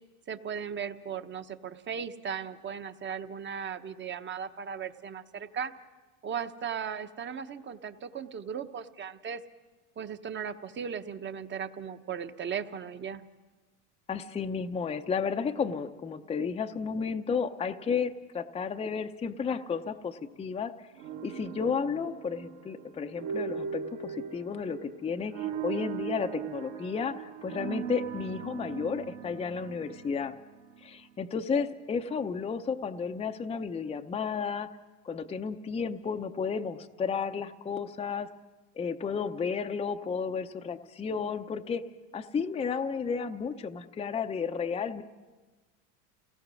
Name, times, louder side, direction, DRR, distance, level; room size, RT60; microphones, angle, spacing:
voice 1, 0.3-5.7 6.2-9.4 10.0-13.2, right 7 dB, 25° right, 9 dB, 1.0 m, -37 dB
voice 2, 14.1-20.7 21.2-30.3 30.8-34.7 35.0-38.3 38.8-41.9 42.1-45.0, left 6 dB, 15° left, 6 dB, 0.7 m, -32 dB
sound 1, 21.0-31.1, right 8 dB, 60° right, 2.1 m, -39 dB
29.0 x 18.5 x 6.3 m, 1.3 s
supercardioid pair, 125°, 41 cm